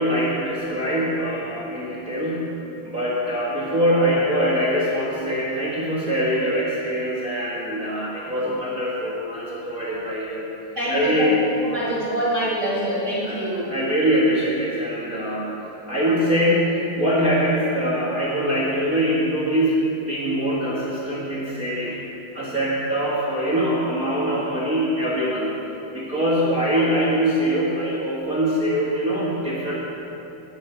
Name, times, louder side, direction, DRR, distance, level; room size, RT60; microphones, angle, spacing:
voice 1, 0.0-2.5 2.8-10.5 10.9-11.4 13.2-22.0 22.3-25.6 25.9-29.7, equal, 55° right, -7 dB, 0.9 m, -23 dB
voice 2, 10.7-13.7, right 1 dB, 35° right, -7 dB, 1.3 m, -25 dB
14.5 x 10.5 x 4.5 m, 2.9 s
omnidirectional pair, 4.4 m